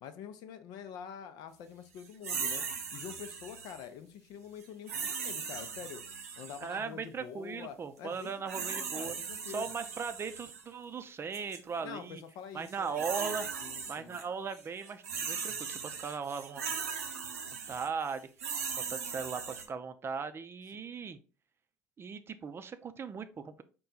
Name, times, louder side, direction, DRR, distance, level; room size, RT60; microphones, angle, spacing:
voice 1, 0.0-2.6 2.9-6.0 6.4-9.6 11.8-14.2, left 8 dB, 60° left, 9 dB, 0.5 m, -46 dB
sound 1, 2.2-3.8 4.9-6.7 8.2-10.6 11.3-11.6 12.6-14.2 14.5-19.7, right 6 dB, 85° right, 0.6 m, -38 dB
voice 2, 6.6-9.1 9.5-12.2 12.5-13.5 13.9-16.6 17.7-18.3 18.9-21.2 22.0-23.6, right 5 dB, 30° right, 10 dB, 0.5 m, -38 dB
4.3 x 2.3 x 3.9 m, 0.36 s
hypercardioid pair, 60°, 8 cm